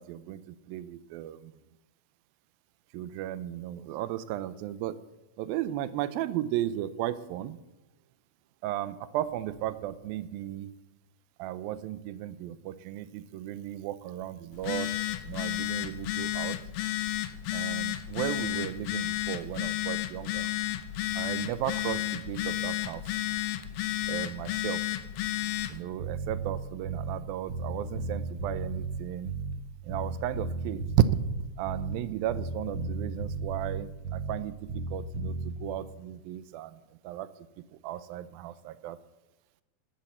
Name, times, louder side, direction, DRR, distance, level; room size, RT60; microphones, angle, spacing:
voice 1, 0.0-1.5 2.9-5.0 5.4-7.6 8.6-10.7 11.4-14.9 15.2-16.6 17.5-20.5 21.2-23.0 24.1-24.8 25.7-29.3 29.8-31.1 31.6-36.8 37.0-37.3 37.8-39.0, right 12 dB, 90° right, 15 dB, 2.5 m, -34 dB
Telephone, 14.5-25.8, left 14 dB, 80° left, 2.6 m, -32 dB
Bass guitar, 26.0-27.2 27.5-29.6 29.9-32.0 32.3-34.4 34.7-35.6, right 3 dB, 65° right, 1.5 m, -34 dB
12.0 x 10.5 x 7.9 m, 1.0 s
omnidirectional pair, 4.1 m